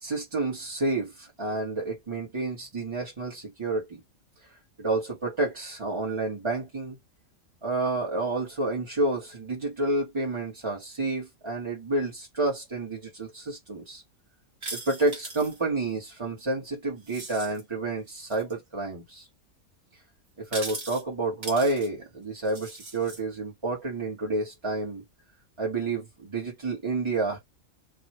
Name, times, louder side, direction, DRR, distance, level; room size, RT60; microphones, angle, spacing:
voice 1, 0.0-4.0 4.8-7.0 7.6-14.0 14.7-19.3 20.4-25.0 25.6-27.4, right 2 dB, 25° right, 1.1 m, -29 dB
sound 1, 14.6-15.6 17.0-17.6 18.2-18.5 20.4-21.0 21.4-21.9 22.4-23.2, right 3 dB, 50° right, 1.2 m, -39 dB
3.0 x 2.7 x 2.9 m
omnidirectional pair, 1.4 m